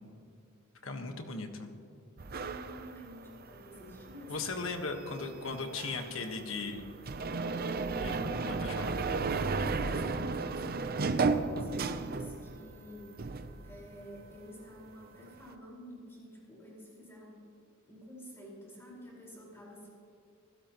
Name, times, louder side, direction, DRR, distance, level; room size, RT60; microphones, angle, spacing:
voice 1, 0.8-1.7 4.3-6.9 8.0-8.9, left 3 dB, 65° left, 5 dB, 1.5 m, -38 dB
sound 1, 2.2-12.8 13.1-14.4, right 4 dB, 45° right, 0.7 m, -34 dB
voice 2, 2.3-4.4 9.5-17.5 17.9-19.9, equal, 10° left, -4 dB, 4.8 m, -50 dB
25.5 x 16.0 x 3.0 m, 2.4 s
head